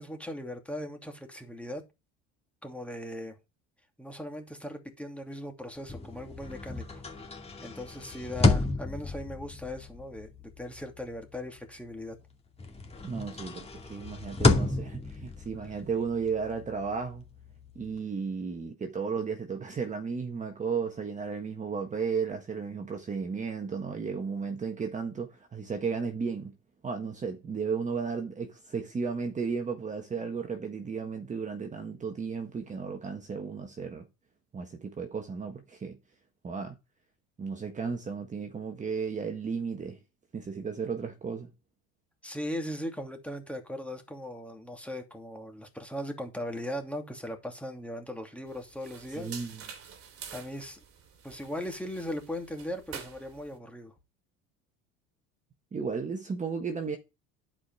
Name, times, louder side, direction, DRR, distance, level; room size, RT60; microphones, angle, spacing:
voice 1, 0.0-1.8 2.6-3.4 4.0-7.0 7.6-12.2 42.2-49.4 50.3-50.8 51.2-53.9, left 1 dB, 5° left, 2.6 m, -38 dB
sound 1, 5.8-12.3 12.6-18.0, left 2 dB, 20° left, 2.4 m, -31 dB
voice 2, 13.0-17.2 17.7-26.5 26.8-34.1 34.5-36.0 36.4-36.8 37.4-40.0 40.3-41.5 49.1-49.6 55.7-57.0, right 5 dB, 25° right, 1.4 m, -34 dB
sound 2, 48.5-53.6, right 7 dB, 45° right, 3.1 m, -47 dB
11.0 x 5.2 x 4.7 m
supercardioid pair, 100°, 31 cm